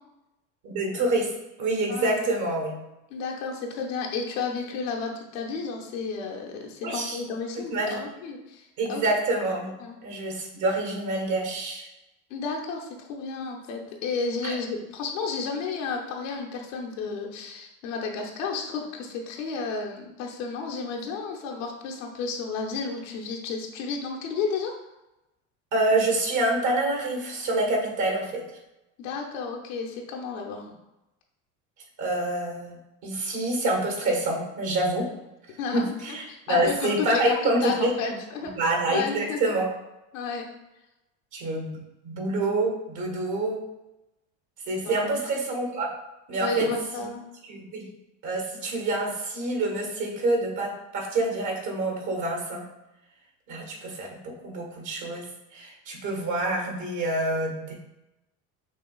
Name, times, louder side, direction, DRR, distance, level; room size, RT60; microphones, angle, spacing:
voice 1, 0.6-1.3 1.6-2.8 6.8-7.2 7.7-8.0 8.8-9.7 10.0-11.9 14.4-14.5 25.7-28.4 32.0-32.8 33.0-35.1 35.7-38.1 38.5-39.7 41.3-43.6 44.7-45.9 46.3-46.7 47.0-47.1 47.5-47.9 48.2-52.6 53.5-57.7, right 2 dB, 50° right, 1 dB, 1.3 m, -27 dB
voice 2, 1.9-2.3 3.1-9.0 9.8-10.0 12.3-24.7 29.0-30.7 35.6-37.3 37.6-38.5 38.9-39.5 40.1-40.5 44.8-45.3 46.4-47.2, left 4 dB, 75° left, 0 dB, 0.9 m, -32 dB
6.1 x 2.4 x 2.3 m, 0.95 s
hypercardioid pair, 80°, 38 cm